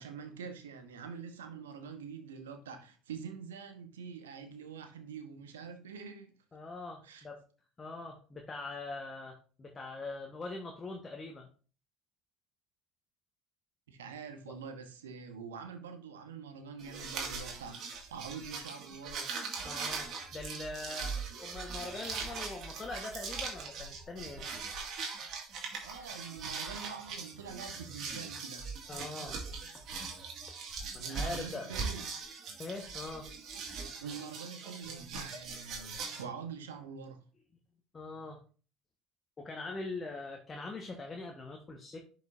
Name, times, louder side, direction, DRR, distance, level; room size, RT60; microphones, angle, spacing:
voice 1, 0.0-6.3 7.0-7.3 13.9-19.3 25.8-28.6 31.0-32.0 33.8-37.2, right 6 dB, 80° right, 1.2 m, -45 dB
voice 2, 6.5-7.4 7.8-11.5 19.6-24.4 28.9-29.4 30.9-31.7 32.6-33.3 37.9-38.4 39.4-42.0, left 3 dB, 30° left, 1.4 m, -42 dB
sound 1, 16.8-36.2, right 5 dB, 55° right, 2.2 m, -41 dB
10.5 x 5.3 x 2.7 m
hypercardioid pair, 65°, 0 cm